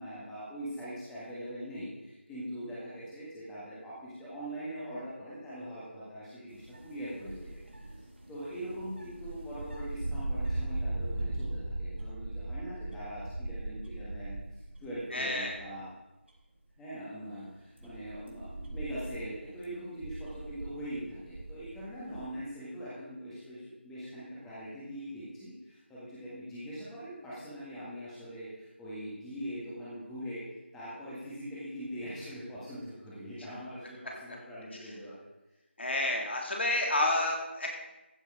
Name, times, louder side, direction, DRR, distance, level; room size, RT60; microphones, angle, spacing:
voice 1, 0.0-7.9 8.3-15.9 16.8-30.4 30.7-35.2, equal, 5° left, -9 dB, 1.7 m, -42 dB
sound 1, 6.5-15.0 15.3-15.8 16.3-16.4 17.2-22.2, right 2 dB, 70° right, 3.7 m, -39 dB
voice 2, 15.1-15.5 35.8-37.7, left 1 dB, 65° left, 0 dB, 3.3 m, -29 dB
14.5 x 6.7 x 4.9 m, 1.0 s
figure-of-eight pair, 170°, 7 cm